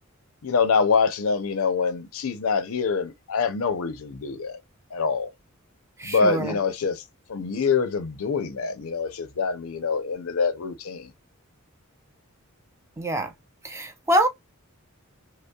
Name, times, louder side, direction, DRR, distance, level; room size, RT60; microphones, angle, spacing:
voice 1, 0.4-4.6 4.9-5.3 6.0-7.0 7.3-11.1, left 5 dB, 70° left, 0.5 m, -25 dB
voice 2, 6.0-6.6 13.0-13.3 13.6-14.3, right 1 dB, 15° right, 0.5 m, -25 dB
5.2 x 2.0 x 2.2 m
head